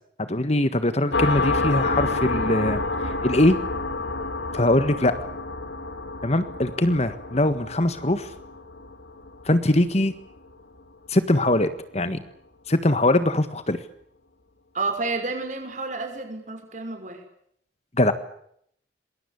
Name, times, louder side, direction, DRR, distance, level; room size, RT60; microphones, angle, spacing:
voice 1, 0.2-3.6 4.5-5.1 6.2-8.3 9.4-10.1 11.1-12.2 12.7-13.8 18.0-18.1, left 1 dB, 35° left, 11 dB, 1.6 m, -22 dB
sound 1, 1.1-10.4, left 3 dB, 70° left, 3.2 m, -29 dB
voice 2, 14.7-17.2, right 3 dB, 40° right, 5 dB, 6.1 m, -30 dB
27.0 x 21.5 x 8.5 m, 0.70 s
head